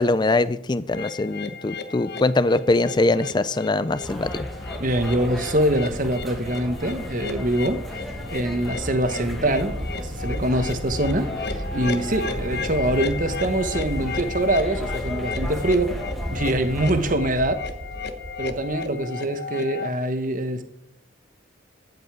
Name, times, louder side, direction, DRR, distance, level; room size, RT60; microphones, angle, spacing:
voice 1, 0.0-4.3, left 2 dB, 20° left, 0.4 m, -22 dB
sound 1, 0.9-19.9, left 4 dB, 50° left, 1.0 m, -35 dB
sound 2, 4.0-17.1, equal, ahead, 1.4 m, -36 dB
voice 2, 4.8-7.8 8.3-16.0 16.3-17.6 18.4-20.6, right 1 dB, 40° right, 1.1 m, -24 dB
sound 3, 8.4-19.0, equal, 20° right, 2.4 m, -34 dB
14.0 x 5.4 x 9.0 m
head